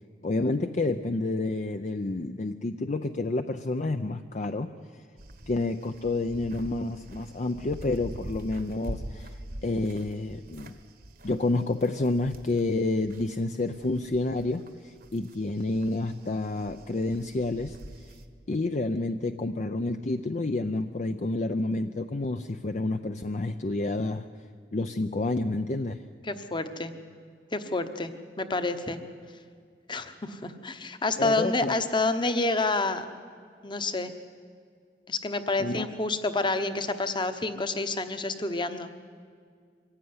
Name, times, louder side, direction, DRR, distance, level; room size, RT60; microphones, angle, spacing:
voice 1, 0.2-5.0 5.5-10.7 11.2-18.1 18.5-24.3 24.7-26.0 31.2-31.8 35.6-35.9, left 2 dB, 40° left, 7 dB, 0.6 m, -29 dB
sound 1, 5.2-13.4 13.7-18.2, right 1 dB, 55° right, 1.4 m, -44 dB
voice 2, 26.2-26.9 27.5-29.0 29.9-33.1 33.6-34.1 35.1-38.9, left 3 dB, 25° left, 10 dB, 1.1 m, -28 dB
23.5 x 15.5 x 9.6 m, 2.1 s
head